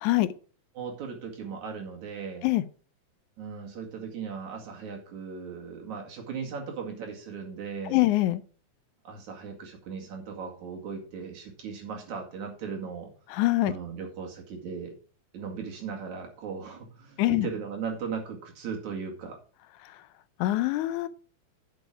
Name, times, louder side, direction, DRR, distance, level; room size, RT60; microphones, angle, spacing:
voice 1, 0.7-2.5 3.4-8.0 9.0-13.1 13.6-14.9 15.3-19.4, right 6 dB, 75° right, 1 dB, 3.5 m, -37 dB
voice 2, 7.9-8.4 13.3-13.7 17.2-17.5 19.8-19.9 20.4-21.1, left 17 dB, 85° left, 14 dB, 2.1 m, -24 dB
9.0 x 7.0 x 4.9 m, 0.38 s
omnidirectional pair, 3.4 m